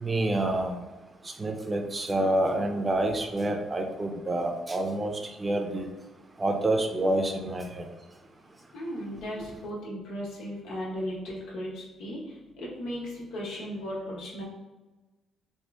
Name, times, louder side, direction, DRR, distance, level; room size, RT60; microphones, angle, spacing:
voice 1, 0.0-0.8 1.4-5.1 5.4-5.9 6.4-7.8, right 1 dB, 25° right, 4 dB, 0.5 m, -27 dB
voice 2, 8.7-14.4, equal, 85° left, -3 dB, 1.0 m, -36 dB
2.9 x 2.7 x 3.3 m, 1.2 s
cardioid pair, 90°, 0 cm